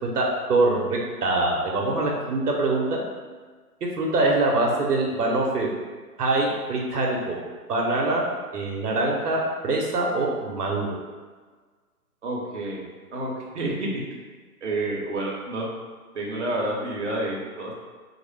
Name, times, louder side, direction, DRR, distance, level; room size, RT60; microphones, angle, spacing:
voice 1, 0.2-3.0 4.0-5.7 6.2-7.4 7.7-8.2 8.5-10.9, right 2 dB, 80° right, -2 dB, 0.7 m, -24 dB
voice 2, 12.2-12.8 13.1-14.2 14.6-15.7 16.1-17.7, right 1 dB, 50° right, -3 dB, 0.6 m, -29 dB
2.3 x 2.0 x 3.1 m, 1.5 s
hypercardioid pair, 170°, 46 cm